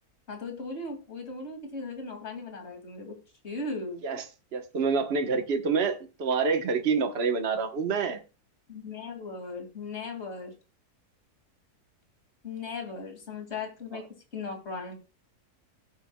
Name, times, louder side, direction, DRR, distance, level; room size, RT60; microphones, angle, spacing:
voice 1, 0.3-3.2 3.4-4.0 8.7-10.5 12.4-14.0 14.3-15.0, left 3 dB, 45° left, 2.6 m, -37 dB
voice 2, 4.5-8.2 13.9-14.0, right 5 dB, 45° right, 1.3 m, -27 dB
17.0 x 8.2 x 2.3 m
omnidirectional pair, 1.6 m